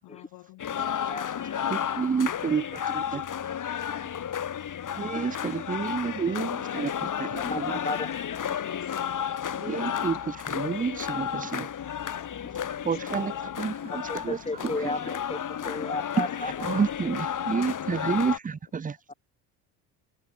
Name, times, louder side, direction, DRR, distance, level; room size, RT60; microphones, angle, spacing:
voice 1, 0.0-1.4 1.7-2.4 2.8-2.9 4.1-4.6 5.0-5.1 6.1-6.2 7.8-9.1 9.8-10.0 11.7-13.6 15.7-16.1 16.4-16.9, left 18 dB, 60° left, 5.7 m, -51 dB
sound 1, 0.6-18.4, left 9 dB, 40° left, 5.6 m, -32 dB
voice 2, 0.8-1.5 1.9-2.0 7.4-8.1 14.1-16.7 19.1-19.2, left 2 dB, 15° left, 2.6 m, -34 dB
voice 3, 1.7-3.2 5.0-7.8 9.6-11.7 12.8-14.9 16.2-19.0, right 6 dB, 20° right, 0.8 m, -30 dB
hypercardioid pair, 65°, 45 cm